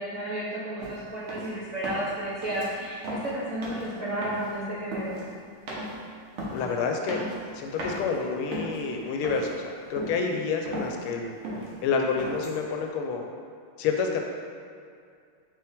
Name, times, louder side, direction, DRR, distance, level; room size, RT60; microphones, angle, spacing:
voice 1, 0.0-5.2, right 1 dB, 60° right, -10 dB, 0.9 m, -32 dB
sound 1, 0.8-1.0 1.3-1.5 1.8-2.2 2.4-2.7 3.0-3.3 3.6-3.9 4.2-4.6 4.9-5.2 5.7-6.0 6.4-6.6 7.1-7.5 7.8-8.0 8.5-8.9 9.2-9.6 10.0-10.2 10.5-11.0 11.4-11.7 12.2-12.6, right 1 dB, 80° right, 0.6 m, -36 dB
voice 2, 6.5-11.3 11.8-13.3 13.8-14.2, left 5 dB, 80° left, 2 dB, 1.4 m, -28 dB
4.7 x 3.2 x 3.4 m, 2.3 s
omnidirectional pair, 2.4 m